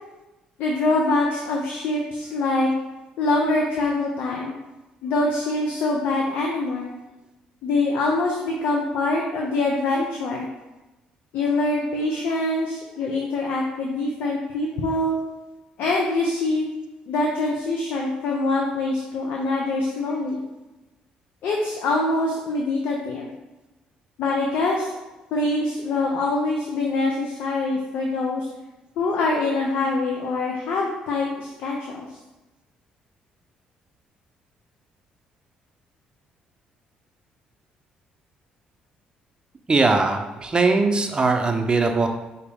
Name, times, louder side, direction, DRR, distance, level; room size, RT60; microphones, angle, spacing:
voice 1, 0.6-2.7 3.2-4.5 5.0-6.9 7.6-10.5 11.3-15.2 15.8-16.7 17.1-20.4 21.4-23.3 24.2-24.9 25.3-28.5 29.0-32.1, left 2 dB, 75° left, -1 dB, 0.7 m, -24 dB
voice 2, 39.7-42.1, right 3 dB, 30° right, 4 dB, 0.6 m, -20 dB
4.9 x 2.9 x 3.5 m, 1.1 s
supercardioid pair, 65°, 3 cm